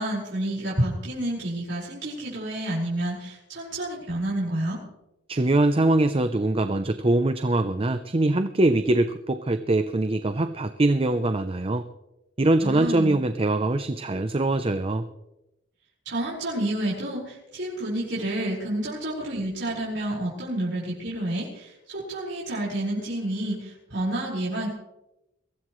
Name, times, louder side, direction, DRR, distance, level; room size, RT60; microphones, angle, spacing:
voice 1, 0.0-4.8 12.6-13.2 16.0-24.7, right 1 dB, 65° right, -6 dB, 5.1 m, -29 dB
voice 2, 5.3-11.8 12.4-15.1, right 2 dB, 30° right, 9 dB, 0.6 m, -23 dB
23.0 x 16.5 x 3.2 m, 0.93 s
head